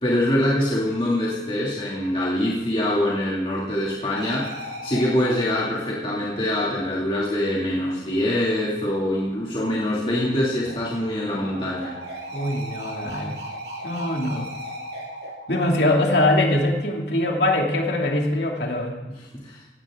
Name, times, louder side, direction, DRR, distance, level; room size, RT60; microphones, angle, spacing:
voice 1, 0.0-4.5 4.8-12.0 19.4-19.6, left 1 dB, 30° left, -5 dB, 2.4 m, -24 dB
sound 1, 4.2-6.8 10.3-16.8, right 1 dB, 80° right, 6.3 m, -37 dB
voice 2, 12.3-13.4 13.8-14.5 15.5-18.9, left 1 dB, 75° left, 0 dB, 2.6 m, -22 dB
17.5 x 16.5 x 3.7 m, 1.1 s
head